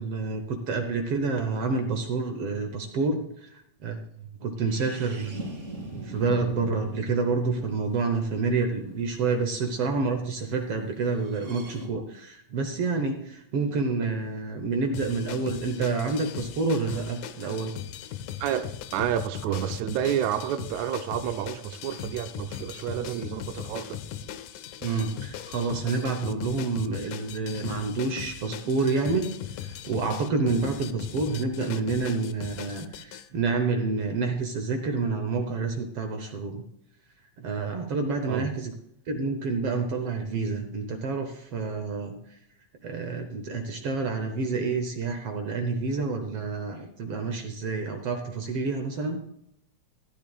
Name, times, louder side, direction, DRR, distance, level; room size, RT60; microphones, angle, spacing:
voice 1, 0.0-4.0 4.4-5.3 5.9-17.8 24.8-36.6 37.4-38.7 39.1-42.4 42.8-49.2, right 4 dB, 65° right, 1.5 m, -28 dB
sound 1, 4.6-10.3 11.1-11.9, right 1 dB, 25° right, 2.8 m, -42 dB
sound 2, 14.9-33.3, left 10 dB, 75° left, 2.1 m, -39 dB
voice 2, 18.4-24.0 38.3-38.5, right 10 dB, 85° right, 1.6 m, -30 dB
14.0 x 12.5 x 2.4 m
omnidirectional pair, 3.7 m